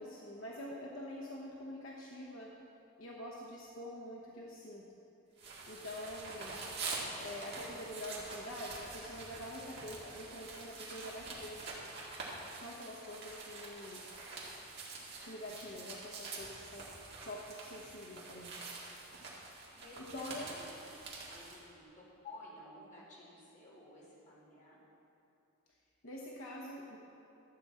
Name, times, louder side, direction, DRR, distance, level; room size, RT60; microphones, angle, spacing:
voice 1, 0.0-2.5 3.0-4.9 5.6-6.6 7.2-11.6 12.6-14.0 15.2-16.9 17.2-18.5 20.1-20.5 26.0-27.0, left 1 dB, 70° left, -3 dB, 1.0 m, -46 dB
sound 1, 5.4-21.6, right 3 dB, 50° right, 2.0 m, -46 dB
voice 2, 19.7-21.0 21.3-24.8, left 1 dB, 35° left, -7 dB, 2.5 m, -54 dB
13.0 x 7.7 x 4.3 m, 2.9 s
head